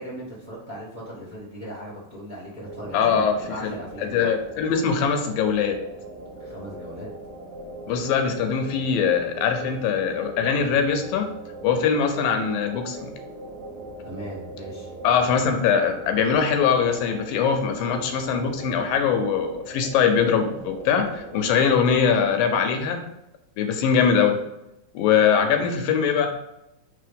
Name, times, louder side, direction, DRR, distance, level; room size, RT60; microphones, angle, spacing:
voice 1, 0.0-4.3 6.4-7.1 14.0-14.9 25.3-25.6, equal, 20° right, -6 dB, 1.3 m, -38 dB
sound 1, 2.7-22.6, right 2 dB, 70° right, 1.5 m, -40 dB
voice 2, 2.9-3.7 4.1-5.8 7.9-11.3 11.6-13.1 15.0-23.0 23.6-24.4 24.9-26.3, left 6 dB, 80° left, 5 dB, 2.4 m, -22 dB
4.7 x 4.0 x 5.1 m, 0.86 s
omnidirectional pair, 4.1 m